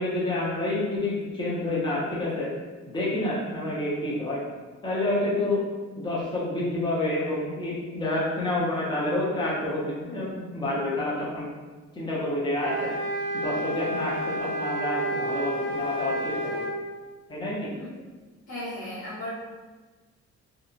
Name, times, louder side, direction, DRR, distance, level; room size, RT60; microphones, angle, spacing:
voice 1, 0.0-2.5 2.9-4.4 4.8-5.6 6.0-11.5 11.9-12.9 13.3-16.7 17.3-17.7, left 1 dB, 15° left, -6 dB, 0.8 m, -28 dB
sound 1, 12.6-16.8, right 1 dB, 40° right, 0.8 m, -30 dB
voice 2, 18.5-19.3, left 1 dB, 75° left, -8 dB, 1.2 m, -35 dB
2.7 x 2.3 x 2.6 m, 1.3 s
cardioid pair, 90°, 30 cm